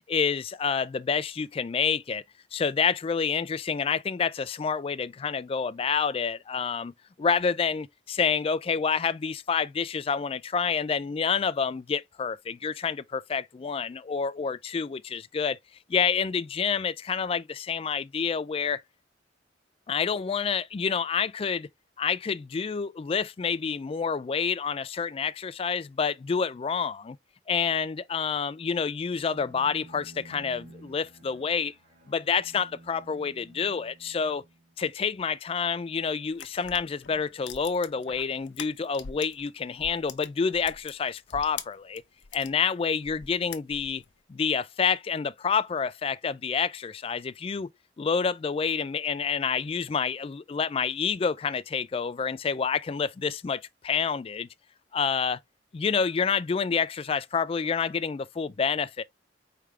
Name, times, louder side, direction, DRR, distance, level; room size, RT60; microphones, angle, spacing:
voice 1, 0.1-2.2 2.5-6.9 7.2-15.6 15.9-18.8 19.9-21.7 22.0-27.2 27.5-31.7 32.1-34.4 34.8-42.0 42.3-44.0 44.3-47.7 48.0-54.5 54.9-55.4 55.7-59.0, left 6 dB, 30° left, 0.3 m, -28 dB
Bowed string instrument, 29.1-34.9, right 2 dB, 45° right, 1.5 m, -52 dB
sound 1, 36.3-39.5 39.8-42.5 43.0-44.1, left 8 dB, 75° left, 0.7 m, -43 dB
4.7 x 3.5 x 3.2 m
head